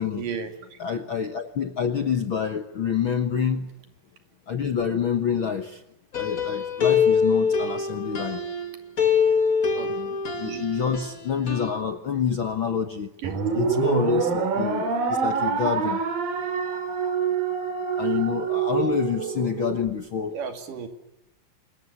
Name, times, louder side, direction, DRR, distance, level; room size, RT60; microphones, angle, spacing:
voice 1, 0.2-0.8 9.7-9.9 10.4-10.7 13.2-13.4 20.3-20.9, right 6 dB, 70° right, 6 dB, 4.1 m, -34 dB
voice 2, 0.8-3.7 4.5-5.8 6.2-8.4 9.9-13.1 13.5-16.0 18.0-20.3, left 7 dB, 55° left, 7 dB, 1.4 m, -27 dB
sound 1, 6.1-8.7 9.0-11.1 11.5-11.8, left 6 dB, 30° left, 1.8 m, -24 dB
sound 2, 13.2-19.8, right 6 dB, 85° right, 4.8 m, -26 dB
27.0 x 22.0 x 9.8 m, 0.91 s
omnidirectional pair, 3.9 m